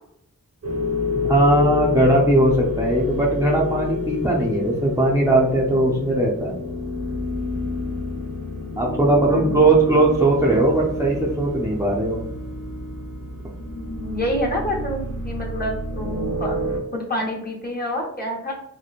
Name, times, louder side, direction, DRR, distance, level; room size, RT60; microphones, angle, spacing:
sound 1, 0.6-16.8, left 3 dB, 50° right, 0.7 m, -28 dB
voice 1, 1.2-6.6 8.8-12.2, right 2 dB, 10° right, -3 dB, 0.4 m, -19 dB
voice 2, 9.3-9.6 13.8-16.6 16.9-18.5, left 1 dB, 30° left, -2 dB, 0.9 m, -27 dB
2.9 x 2.1 x 2.4 m, 0.77 s
wide cardioid pair, 65°, 32 cm